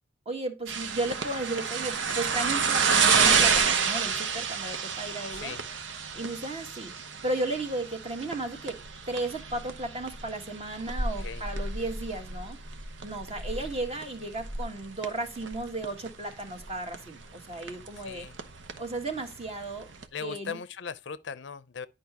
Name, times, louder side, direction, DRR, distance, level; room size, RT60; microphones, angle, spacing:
voice 1, 0.2-5.5 6.1-6.9 7.2-8.8 9.1-12.6 13.0-18.3 18.8-19.9 20.2-20.6, right 2 dB, 35° right, 1.5 m, -34 dB
sound 1, 0.7-20.1, right 5 dB, 90° right, 0.9 m, -30 dB
voice 2, 5.3-5.6 11.2-11.5 18.0-18.3 20.1-21.9, left 6 dB, 70° left, 0.5 m, -38 dB
10.5 x 5.0 x 2.9 m
head